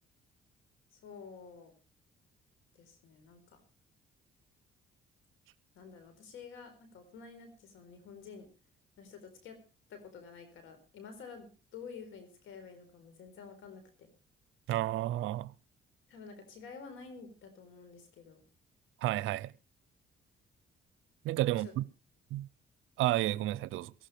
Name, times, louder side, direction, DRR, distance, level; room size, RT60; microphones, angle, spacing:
voice 1, 0.9-1.7 2.8-3.6 5.7-8.5 9.0-9.6 9.9-14.1 16.1-18.4 21.5-21.7, left 5 dB, 85° left, 4.3 m, -50 dB
voice 2, 14.7-15.5 19.0-19.5 21.2-21.9 22.3-22.5 23.0-23.9, right 15 dB, 90° right, 0.7 m, -31 dB
17.5 x 15.5 x 3.4 m
cardioid pair, 90°, 20 cm